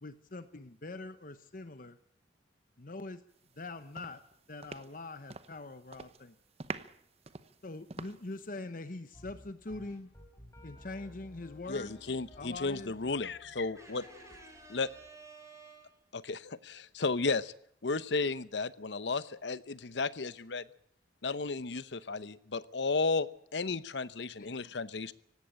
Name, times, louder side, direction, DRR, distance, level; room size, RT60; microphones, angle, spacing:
voice 1, 0.0-2.0 2.8-3.2 3.6-4.2 4.5-6.3 7.6-10.1 10.6-11.9 12.4-12.9 24.4-24.6, left 2 dB, 50° left, 1.0 m, -43 dB
sound 1, 3.4-3.7 4.0-5.6 5.9-6.2 6.6-8.4, right 4 dB, 35° right, 0.9 m, -45 dB
sound 2, 9.1-15.1, left 1 dB, 15° left, 4.3 m, -55 dB
voice 2, 11.7-14.0 14.7-14.9 16.1-17.5 17.8-20.6 21.2-25.1, left 3 dB, 75° left, 0.9 m, -34 dB
voice 3, 13.7-16.1, right 3 dB, 15° right, 6.3 m, -53 dB
18.0 x 16.5 x 8.9 m
head